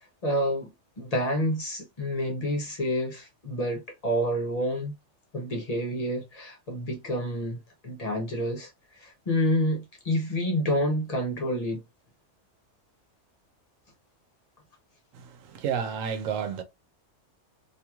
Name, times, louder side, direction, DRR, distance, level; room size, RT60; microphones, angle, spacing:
voice 1, 0.2-0.7 1.0-4.9 5.3-11.8, equal, 40° left, 0.7 m, -28 dB
voice 2, 15.1-16.6, right 7 dB, 90° right, 1.0 m, -31 dB
3.0 x 2.6 x 2.3 m
omnidirectional pair, 1.3 m